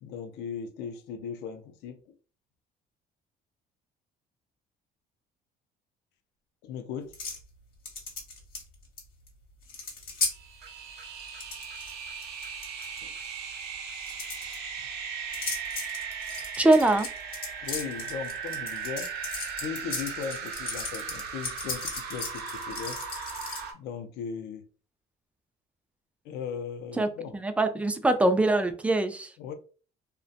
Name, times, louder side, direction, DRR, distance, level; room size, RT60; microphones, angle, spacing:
voice 1, 0.0-2.0 6.6-7.1 13.0-13.1 17.6-19.1 19.6-23.0 23.7-24.7 26.2-27.3 29.4-29.5, left 7 dB, 85° left, 0.4 m, -37 dB
sound 1, 7.1-7.4 7.9-9.0 9.3-9.4 9.6-10.3 11.2-11.9 12.2-13.0 14.0-14.6 15.3-23.6, left 4 dB, 60° left, 1.1 m, -36 dB
sound 2, 10.3-23.7, right 6 dB, 75° right, 0.6 m, -38 dB
voice 2, 16.6-17.1 27.0-27.1 27.3-29.3, right 2 dB, 10° right, 0.3 m, -23 dB
2.6 x 2.1 x 2.4 m
cardioid pair, 110°, 17 cm